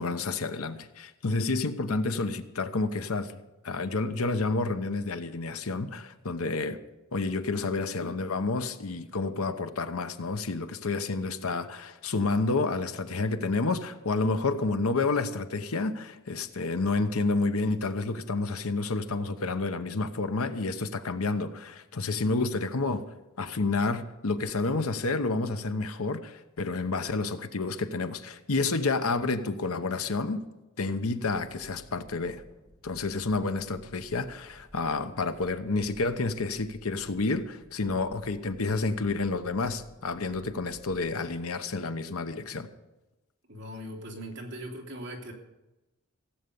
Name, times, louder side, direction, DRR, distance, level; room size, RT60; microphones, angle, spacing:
voice 1, 0.0-3.4 3.6-6.8 7.1-23.0 23.4-30.4 30.8-32.4 32.8-42.7, left 3 dB, 80° left, 0.9 m, -29 dB
sound 1, 31.3-41.2, equal, 20° left, 2.4 m, -55 dB
voice 2, 43.5-45.3, equal, 55° right, 3.0 m, -40 dB
16.5 x 8.0 x 7.0 m
head